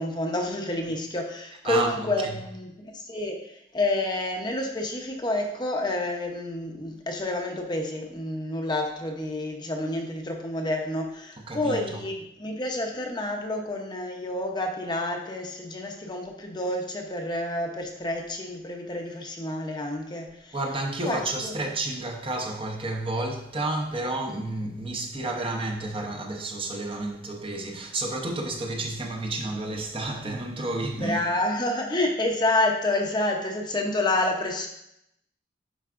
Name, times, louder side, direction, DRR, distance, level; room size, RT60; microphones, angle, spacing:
voice 1, 0.0-20.6 21.0-21.5 31.0-34.7, left 2 dB, 25° left, 0.8 m, -29 dB
voice 2, 1.6-2.4 11.4-11.8 20.5-31.2, right 2 dB, 30° right, 0.8 m, -31 dB
10.0 x 4.7 x 2.5 m
head